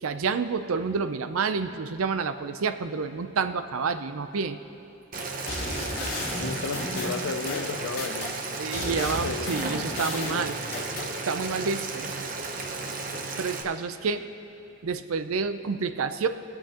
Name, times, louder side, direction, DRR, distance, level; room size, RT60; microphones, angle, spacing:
voice 1, 0.0-4.6 8.6-10.6 11.3-12.1 13.4-14.3 14.8-16.3, right 5 dB, 90° right, 10 dB, 0.5 m, -29 dB
Boiling, 5.1-13.6, right 3 dB, 40° right, 0.7 m, -34 dB
sound 1, 5.5-8.3 8.7-11.1, left 2 dB, 50° left, 1.9 m, -34 dB
voice 2, 6.3-8.3 8.8-9.6, left 4 dB, 80° left, 11 dB, 0.5 m, -34 dB
24.0 x 8.0 x 2.9 m, 2.9 s
head